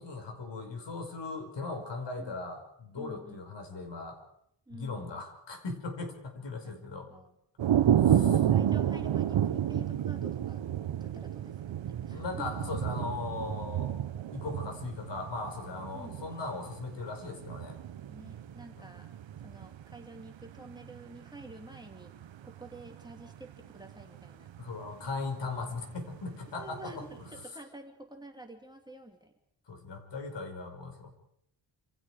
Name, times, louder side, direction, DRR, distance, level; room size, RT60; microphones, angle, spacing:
voice 1, 0.0-4.2 4.7-7.1 8.0-8.4 12.1-13.9 14.3-17.8 18.8-18.9 24.6-27.1 29.7-31.1, left 3 dB, 65° left, 5 dB, 5.2 m, -38 dB
voice 2, 3.0-3.4 4.7-5.2 6.6-7.4 8.1-12.5 15.9-16.3 18.1-19.1 19.4-22.1 22.4-24.5 26.6-29.3, right 2 dB, 10° right, 3 dB, 2.7 m, -49 dB
sound 1, 7.6-26.6 27.1-27.4, right 10 dB, 75° right, 1.1 m, -31 dB
27.5 x 27.0 x 5.0 m, 0.74 s
wide cardioid pair, 165°, 45 cm